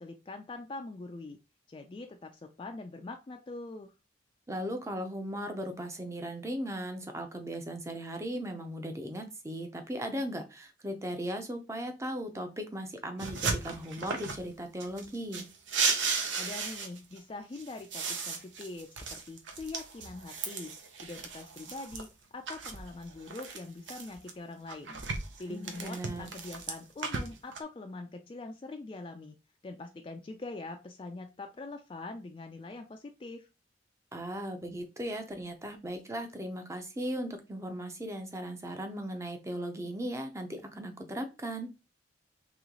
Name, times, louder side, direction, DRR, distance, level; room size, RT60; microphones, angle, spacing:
voice 1, 0.0-1.4 1.7-3.9 16.3-20.7 21.0-22.1 22.3-25.0 25.4-29.4 29.6-33.5, left 2 dB, 30° left, 5 dB, 0.3 m, -43 dB
voice 2, 4.5-15.5 25.5-26.3 34.1-41.7, equal, 15° right, 6 dB, 0.6 m, -37 dB
sound 1, 13.2-14.5 14.8-17.2 17.5-22.0 22.5-24.3 24.7-27.6, right 4 dB, 85° right, 0.7 m, -35 dB
3.1 x 3.1 x 3.7 m, 0.29 s
head